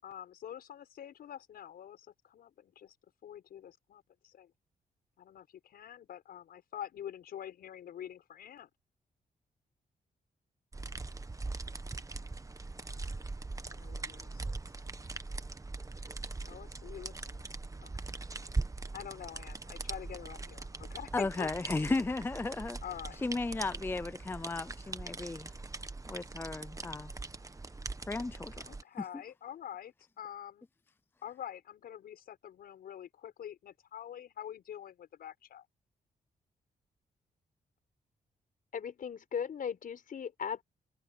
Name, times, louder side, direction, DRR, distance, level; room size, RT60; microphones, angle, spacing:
voice 1, 0.0-2.9 3.2-4.5 5.2-8.7 11.4-11.6 13.7-14.6 16.4-17.5 17.8-18.1 18.9-21.5 22.8-23.2 28.6-30.7 31.2-35.7, left 10 dB, 85° left, 6.0 m, -46 dB
sound 1, 10.7-28.8, right 3 dB, 20° right, 1.2 m, -41 dB
voice 2, 21.1-22.8 23.2-25.5 26.1-27.1 28.1-28.6, left 3 dB, 15° left, 0.4 m, -34 dB
voice 3, 38.7-40.6, left 7 dB, 65° left, 5.3 m, -37 dB
cardioid pair, 80°, 15 cm